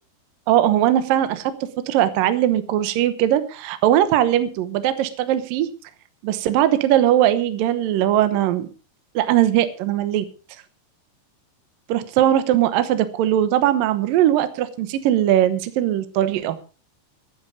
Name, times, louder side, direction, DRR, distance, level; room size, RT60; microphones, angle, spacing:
voice 1, 0.5-1.5 1.9-5.7 6.2-8.7 9.2-10.2 11.9-16.6, right 12 dB, 70° right, 11 dB, 2.2 m, -20 dB
15.0 x 10.0 x 5.2 m, 0.37 s
omnidirectional pair, 5.1 m